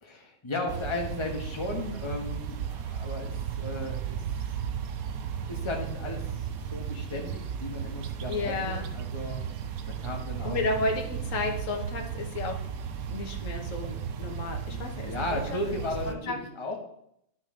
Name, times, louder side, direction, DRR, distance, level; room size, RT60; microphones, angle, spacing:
voice 1, 0.0-4.2 5.3-9.4 9.9-10.6 14.6-16.8, left 2 dB, 20° left, 1 dB, 1.4 m, -35 dB
sound 1, 0.7-16.1, right 8 dB, 80° right, 1.2 m, -35 dB
voice 2, 8.3-8.8 10.4-12.5 13.1-15.6 16.0-16.4, left 3 dB, 65° left, 2 dB, 1.6 m, -32 dB
10.5 x 6.2 x 3.8 m, 0.74 s
omnidirectional pair, 1.5 m